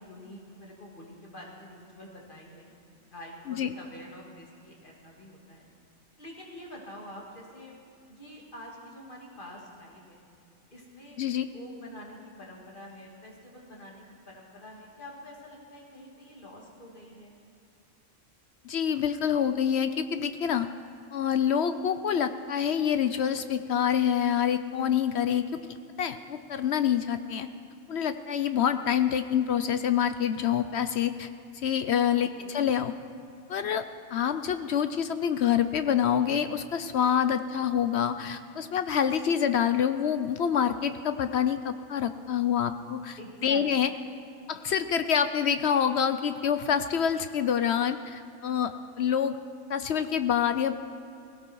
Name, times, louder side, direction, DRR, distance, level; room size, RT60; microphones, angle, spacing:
voice 1, 0.0-2.7 3.1-5.7 6.2-7.7 8.1-10.2 10.7-11.2 11.5-17.4 32.2-32.6 43.2-43.8, left 1 dB, 35° left, -2 dB, 2.8 m, -47 dB
voice 2, 18.6-20.7 21.1-25.6 26.0-27.5 27.9-31.3 31.5-32.3 32.5-32.9 33.5-33.8 34.1-43.9 44.5-49.4 49.7-50.7, left 8 dB, 60° left, 10 dB, 0.7 m, -26 dB
18.0 x 17.5 x 4.6 m, 2.7 s
omnidirectional pair, 1.5 m